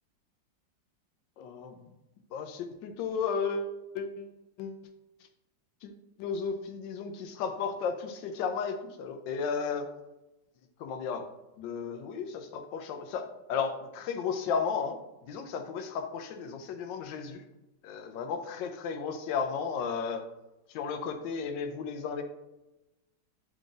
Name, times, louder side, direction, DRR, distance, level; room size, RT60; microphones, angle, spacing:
voice 1, 1.4-1.9 2.3-4.3 4.6-4.8 5.8-5.9 6.2-9.9 10.8-11.3 11.6-15.0 15.3-17.4 17.8-20.2 20.7-22.2, left 6 dB, 75° left, 6 dB, 1.2 m, -34 dB
3.8 x 3.6 x 3.8 m, 0.96 s
omnidirectional pair, 2.1 m